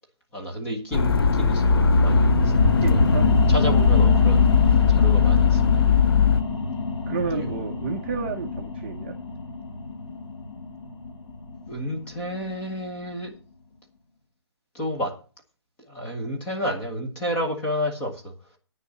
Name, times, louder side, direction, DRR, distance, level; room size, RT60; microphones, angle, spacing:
voice 1, 0.3-2.5 2.8-3.0 3.5-5.8 7.3-7.6 11.7-13.3 14.7-15.2 15.9-18.3, equal, 10° left, 1 dB, 1.3 m, -31 dB
sound 1, 0.9-6.4, left 5 dB, 60° left, 0.9 m, -19 dB
sound 2, 1.5-12.6 13.1-13.2, left 3 dB, 85° left, 3.1 m, -27 dB
voice 2, 2.6-3.3 7.1-9.1, right 5 dB, 25° right, 2 dB, 0.9 m, -31 dB
9.4 x 6.9 x 7.1 m, 0.34 s
hypercardioid pair, 180°, 14 cm